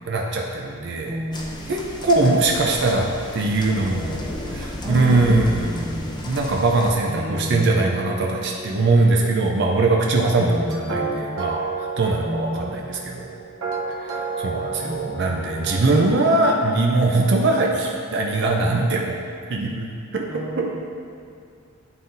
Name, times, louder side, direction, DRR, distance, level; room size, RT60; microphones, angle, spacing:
voice 1, 0.1-1.2 1.7-3.1 3.3-4.2 4.5-5.9 6.3-10.6 10.9-13.3 14.0-19.2 19.5-20.7, right 2 dB, 55° right, 0 dB, 0.5 m, -21 dB
voice 2, 1.1-1.7 2.2-2.4 4.8-6.6 7.1-9.1 10.4-11.4 12.2-13.0 14.8-16.6 20.3-20.8, equal, 10° right, -4 dB, 0.8 m, -32 dB
sound 1, 1.3-6.9, left 1 dB, 20° left, 0.5 m, -33 dB
sound 2, 10.5-15.8, right 4 dB, 80° right, 0.8 m, -31 dB
10.5 x 3.9 x 2.6 m, 2.4 s
head